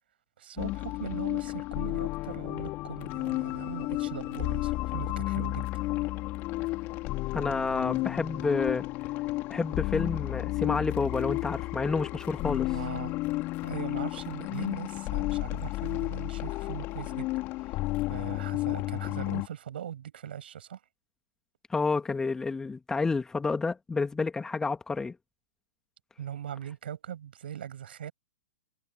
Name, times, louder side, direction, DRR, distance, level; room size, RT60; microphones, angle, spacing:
voice 1, 0.4-5.7 12.7-13.2 13.6-17.3 17.6-20.8 26.2-28.1, right 10 dB, 55° right, 7.0 m, -40 dB
sound 1, 0.6-19.5, left 20 dB, 30° left, 3.5 m, -32 dB
voice 2, 7.3-8.9 9.5-12.7 21.7-25.2, left 4 dB, 10° left, 2.6 m, -29 dB
figure-of-eight pair, 110°, 6 cm